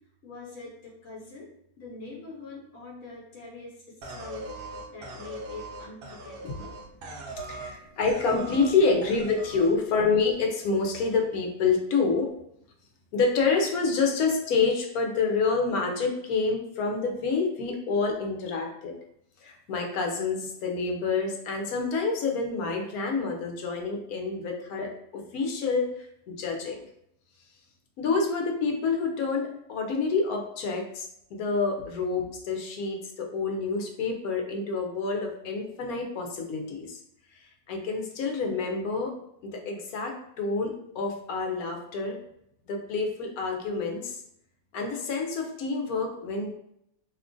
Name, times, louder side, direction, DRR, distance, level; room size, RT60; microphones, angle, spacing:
voice 1, 0.2-1.5 1.8-4.5 4.9-8.0, left 3 dB, 65° left, -3 dB, 1.1 m, -44 dB
sound 1, 4.0-7.8 8.0-8.7 9.0-9.7, right 3 dB, 60° right, 0.6 m, -40 dB
voice 2, 7.5-12.3 13.1-18.9 19.4-26.8 28.0-37.0 37.3-39.1 39.4-42.2 42.7-44.2 44.7-46.5, left 4 dB, 90° left, 2 dB, 1.1 m, -28 dB
2.9 x 2.4 x 3.6 m, 0.75 s
omnidirectional pair, 1.5 m